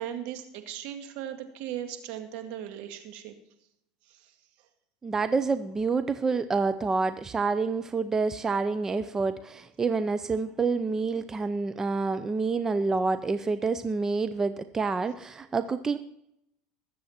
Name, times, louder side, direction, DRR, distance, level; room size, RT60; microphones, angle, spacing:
voice 1, 0.0-3.3, right 10 dB, 65° right, 6 dB, 2.1 m, -37 dB
voice 2, 5.0-16.0, right 4 dB, 20° right, 11 dB, 0.6 m, -28 dB
20.5 x 7.8 x 4.3 m, 0.78 s
supercardioid pair, 110°, 3 cm